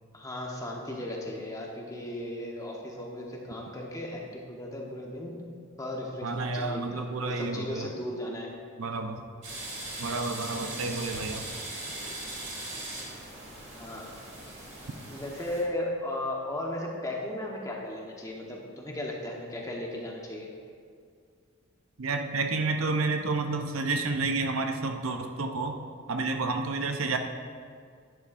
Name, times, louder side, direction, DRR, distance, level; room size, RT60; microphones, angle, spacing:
voice 1, 0.1-5.4 5.8-8.5 10.6-10.9 13.7-14.1 15.0-20.5, left 1 dB, 15° left, -1 dB, 1.1 m, -36 dB
voice 2, 6.2-7.9 8.8-9.2 10.0-11.5 22.0-25.8 26.1-27.2, right 3 dB, 75° right, 5 dB, 0.7 m, -30 dB
sound 1, 9.4-15.6, right 2 dB, 30° right, 2.6 m, -39 dB
11.0 x 10.5 x 2.6 m, 2.2 s
head